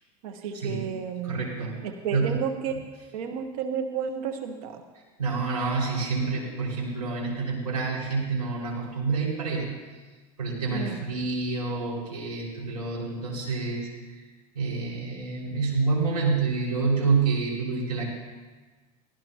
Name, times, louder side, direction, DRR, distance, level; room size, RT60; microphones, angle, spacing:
voice 1, 0.2-1.4 1.8-2.7 3.1-4.8 10.7-11.0, right 7 dB, 70° right, 5 dB, 1.3 m, -32 dB
voice 2, 1.2-1.8 2.1-2.3 5.2-9.7 10.4-13.9 14.5-18.0, right 4 dB, 90° right, -3 dB, 5.2 m, -28 dB
18.0 x 17.0 x 2.9 m, 1.3 s
hypercardioid pair, 80°, 20 cm